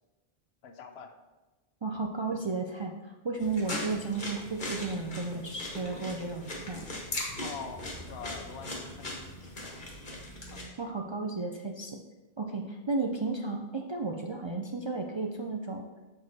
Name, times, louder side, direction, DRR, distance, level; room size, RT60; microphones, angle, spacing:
voice 1, 0.6-1.1 7.4-9.3 9.6-9.8 10.1-10.2 10.5-10.6, left 5 dB, 85° left, 6 dB, 0.9 m, -44 dB
voice 2, 1.8-6.8 10.8-12.0 12.4-15.8, right 3 dB, 45° right, 1 dB, 0.3 m, -33 dB
sound 1, 3.4-10.6, left 1 dB, 50° left, 1.4 m, -39 dB
6.6 x 4.7 x 4.1 m, 1.1 s
omnidirectional pair, 1.0 m